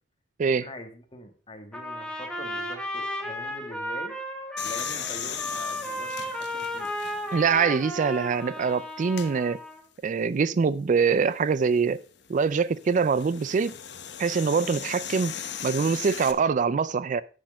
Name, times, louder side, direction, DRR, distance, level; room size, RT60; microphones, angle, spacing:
voice 1, 0.4-4.2 4.6-6.9, left 1 dB, 30° left, 1.6 m, -44 dB
Trumpet, 1.7-9.8, left 1 dB, 5° left, 1.5 m, -34 dB
sound 1, 4.6-7.5 8.0-8.1 9.0-9.3 11.4-16.3, left 9 dB, 65° left, 1.1 m, -38 dB
voice 2, 7.3-9.6 10.0-12.0 12.3-13.7 14.2-15.3 15.6-17.2, right 5 dB, 45° right, 0.4 m, -24 dB
10.0 x 6.4 x 5.2 m
head